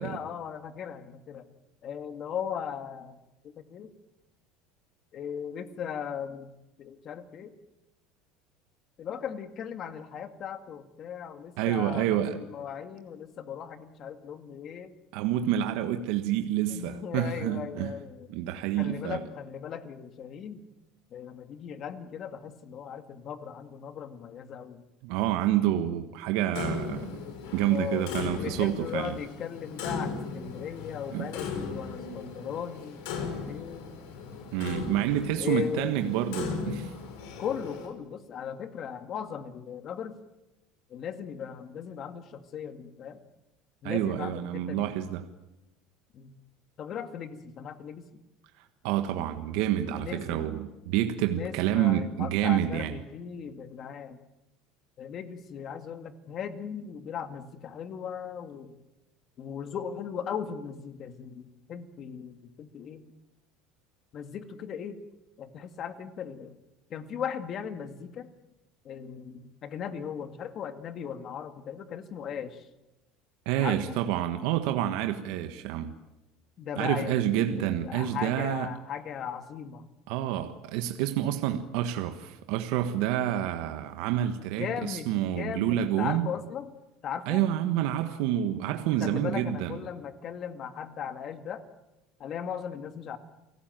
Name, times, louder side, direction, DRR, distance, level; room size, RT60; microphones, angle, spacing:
voice 1, 0.0-1.5 1.8-3.9 5.1-6.5 6.8-7.5 9.0-14.9 16.7-18.3 18.8-20.6 21.1-24.8 27.7-34.0 35.4-36.0 37.4-40.2 40.9-43.2 43.8-44.9 46.1-46.4 46.8-48.2 49.9-50.5 51.3-54.2 55.0-58.8 59.4-63.1 64.1-65.0 65.4-66.6 66.9-68.3 68.8-72.7 73.6-74.0 76.6-79.9 84.6-86.7 87.0-87.4 89.0-91.6 92.2-93.2, left 8 dB, 35° left, 9 dB, 2.0 m, -38 dB
voice 2, 11.6-12.4 15.1-17.9 18.3-19.2 25.0-27.1 27.5-29.2 31.1-31.3 34.5-36.9 43.8-45.2 48.6-52.9 73.4-75.9 76.8-78.7 80.1-86.3 87.3-89.8, right 11 dB, 70° right, 7 dB, 1.5 m, -28 dB
Clock, 26.5-37.9, left 5 dB, 80° left, 6.4 m, -37 dB
29.0 x 18.5 x 9.3 m, 1.0 s
cardioid pair, 150°, 0 cm